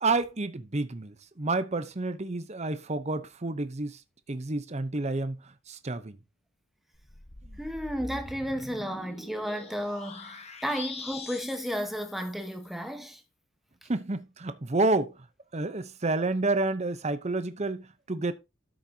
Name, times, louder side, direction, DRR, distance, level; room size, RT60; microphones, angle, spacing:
voice 1, 0.0-4.0 4.3-6.2 7.4-7.6 13.9-15.2 15.5-18.3, right 2 dB, 30° right, 0.8 m, -29 dB
sound 1, 6.9-12.8, left 3 dB, 30° left, 1.4 m, -44 dB
voice 2, 7.6-13.2, equal, ahead, 1.2 m, -33 dB
13.0 x 6.5 x 2.8 m
head